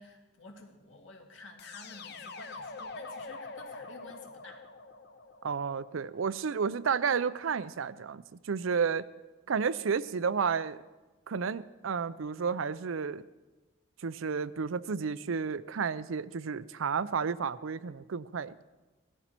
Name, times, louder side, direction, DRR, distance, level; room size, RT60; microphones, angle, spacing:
voice 1, 0.0-4.7, left 2 dB, 70° left, 3 dB, 2.0 m, -51 dB
sound 1, 1.6-6.5, left 3 dB, 50° left, 0.9 m, -45 dB
voice 2, 5.4-9.1 9.5-10.8 11.3-13.2 14.0-18.6, right 6 dB, 80° right, 16 dB, 0.5 m, -31 dB
17.5 x 13.5 x 4.5 m, 1.2 s
head